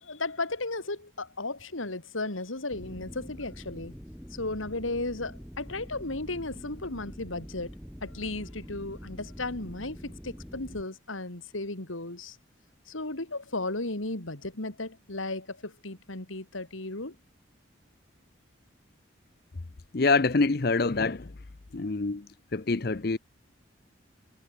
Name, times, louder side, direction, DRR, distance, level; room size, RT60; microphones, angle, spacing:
voice 1, 0.0-3.9 4.3-7.7 8.0-12.4 12.9-17.1, left 2 dB, 90° left, 3.3 m, -35 dB
sound 1, 2.7-10.8, equal, 5° right, 7.6 m, -45 dB
voice 2, 19.9-21.3 21.7-22.2 22.5-23.2, left 3 dB, 50° left, 0.7 m, -25 dB
head